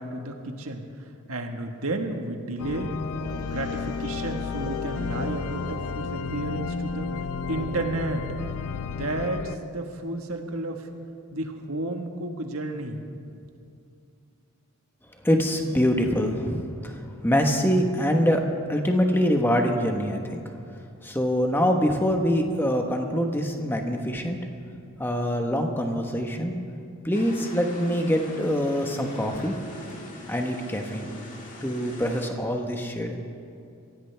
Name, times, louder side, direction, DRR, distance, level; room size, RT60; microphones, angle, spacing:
voice 1, 0.0-3.0 3.5-7.1 7.5-8.3 8.9-10.9 11.3-13.0, right 2 dB, 80° right, 4 dB, 1.5 m, -32 dB
sound 1, 2.6-9.6, left 5 dB, 80° left, 0.5 m, -32 dB
sound 2, 2.9-10.9, right 1 dB, 50° right, 2.5 m, -44 dB
voice 2, 15.2-18.4 18.7-20.4 21.0-24.4 25.0-26.6 27.0-29.5 30.3-31.1 31.6-33.2, equal, 10° left, 3 dB, 1.2 m, -24 dB
sound 3, 27.1-32.3, left 1 dB, 35° left, 2.1 m, -42 dB
23.5 x 16.0 x 3.4 m, 2.5 s
head